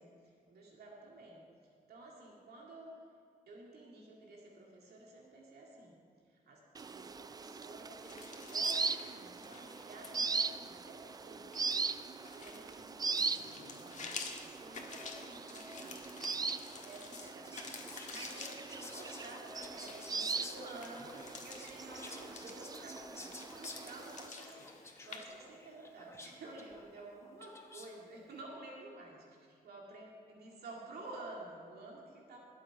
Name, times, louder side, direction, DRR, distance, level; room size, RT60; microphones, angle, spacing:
voice 1, 0.0-1.5 1.9-3.1 3.5-6.0 6.3-11.5 12.3-32.4, right 2 dB, 80° right, -2 dB, 2.3 m, -51 dB
sound 1, 6.7-24.3, right 4 dB, 25° right, 0.4 m, -40 dB
sound 2, 8.0-25.2, left 4 dB, 50° left, 1.5 m, -50 dB
Whispering, 16.7-28.0, left 2 dB, 15° left, 1.1 m, -52 dB
21.0 x 7.7 x 4.7 m, 2.2 s
wide cardioid pair, 140°, 16 cm